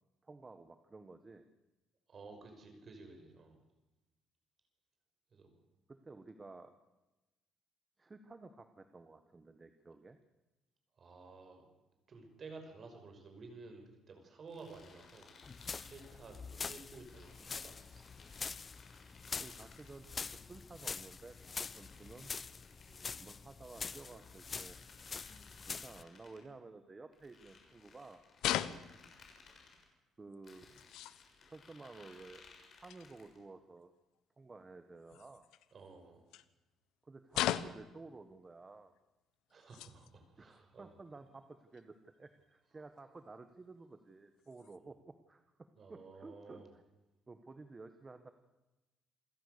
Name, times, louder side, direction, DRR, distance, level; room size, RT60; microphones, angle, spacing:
voice 1, 0.2-1.5 5.9-6.8 8.0-10.2 19.4-22.3 23.2-24.8 25.6-28.2 30.2-30.8 31.5-32.4 32.8-33.9 34.4-35.4 37.0-38.9 40.4-46.8 47.3-48.3, right 3 dB, 20° right, 8 dB, 1.4 m, -53 dB
voice 2, 2.1-3.6 5.3-5.5 11.0-11.7 12.1-15.3 15.8-18.0 22.9-23.1 28.5-28.9 35.7-36.3 39.5-40.9 45.8-46.7, right 3 dB, 35° right, 5 dB, 5.8 m, -53 dB
sound 1, 14.5-16.4 17.0-20.3 21.0-23.2 23.8-26.4 27.1-29.8 30.4-33.4, left 4 dB, 40° left, 6.3 m, -61 dB
sound 2, 15.4-26.0, left 5 dB, 25° left, 0.7 m, -45 dB
sound 3, 28.4-29.2 30.3-30.4 30.7-31.3 32.9-33.1 35.1-35.7 36.3-36.4 37.3-37.9 39.0-39.1 39.5-40.1 40.5-40.6 41.7-41.8 43.0-43.1 44.4-44.8, left 13 dB, 90° left, 1.1 m, -38 dB
27.5 x 16.5 x 6.9 m, 1.0 s
cardioid pair, 145°, 0 cm